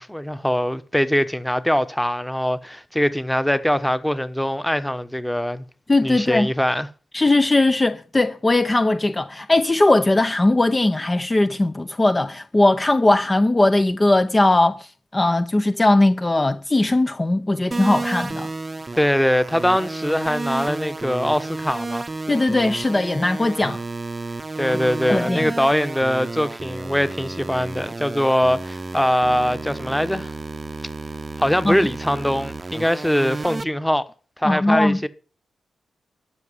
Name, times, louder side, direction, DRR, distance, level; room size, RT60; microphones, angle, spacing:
voice 1, 0.0-5.6 6.0-6.9 19.0-22.1 24.6-30.3 31.4-34.1 34.4-35.1, equal, 5° left, 1.1 m, -22 dB
voice 2, 5.9-6.5 7.1-18.5 22.3-23.8 25.1-25.5 31.6-31.8 34.4-35.0, left 2 dB, 20° left, 0.6 m, -19 dB
sound 1, 17.7-33.6, right 3 dB, 25° right, 0.8 m, -32 dB
13.0 x 6.6 x 9.8 m
cardioid pair, 105°, 0 cm